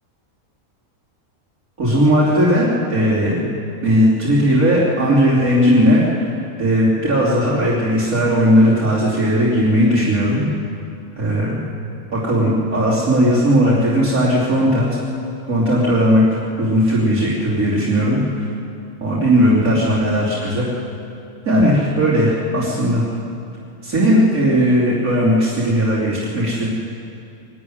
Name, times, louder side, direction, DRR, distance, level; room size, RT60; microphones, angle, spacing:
voice 1, 1.8-3.5 3.8-6.3 6.6-10.4 11.2-11.6 12.1-15.0 15.5-18.5 19.0-20.7 21.5-23.1 23.8-26.7, equal, 80° right, -8 dB, 3.6 m, -17 dB
24.0 x 12.5 x 9.5 m, 2.6 s
omnidirectional pair, 1.5 m